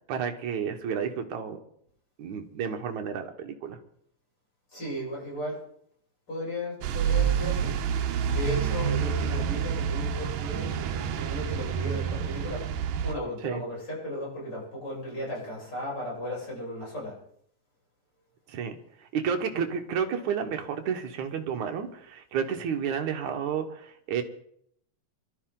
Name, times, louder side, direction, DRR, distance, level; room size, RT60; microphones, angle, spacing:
voice 1, 0.1-1.6 2.2-3.8 13.4-13.6 18.5-18.8 19.1-24.2, right 7 dB, 70° right, 5 dB, 2.7 m, -31 dB
voice 2, 4.7-5.6 6.3-7.8 8.3-12.7 13.0-17.2, left 1 dB, 30° left, -5 dB, 8.2 m, -35 dB
sound 1, 6.8-13.2, right 8 dB, 90° right, 2.4 m, -28 dB
24.0 x 13.0 x 3.9 m, 0.68 s
omnidirectional pair, 3.6 m